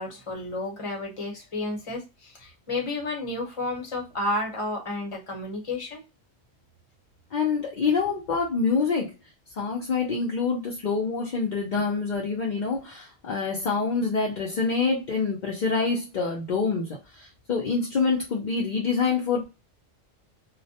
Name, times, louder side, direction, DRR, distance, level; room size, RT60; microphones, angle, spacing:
voice 1, 0.0-6.0, left 2 dB, 30° left, 1 dB, 0.8 m, -31 dB
voice 2, 7.3-9.1 9.6-19.4, left 4 dB, 55° left, -2 dB, 0.5 m, -26 dB
2.3 x 2.1 x 2.7 m, 0.26 s
omnidirectional pair, 1.3 m